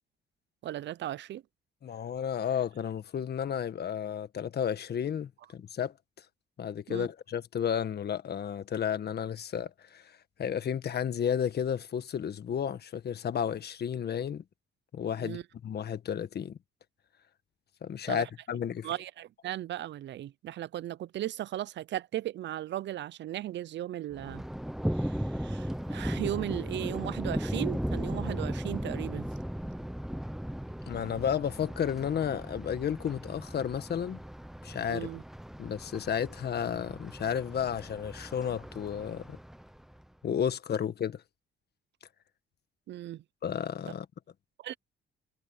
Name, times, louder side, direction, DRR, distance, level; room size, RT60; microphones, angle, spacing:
voice 1, 0.6-1.4 6.9-7.1 15.2-15.4 18.1-18.3 18.8-24.4 24.9-29.3 34.9-35.2 42.9-43.2 44.6-44.8, right 13 dB, 65° right, 0.6 m, -36 dB
voice 2, 1.8-5.9 6.6-10.1 10.4-14.4 14.9-15.4 15.6-16.6 17.8-18.9 30.9-34.2 34.6-35.1 35.6-39.4 40.2-41.2 43.4-44.0, left 8 dB, 55° left, 1.6 m, -32 dB
Thunder, 24.1-40.1, equal, ahead, 0.8 m, -37 dB
cardioid pair, 90°, 20 cm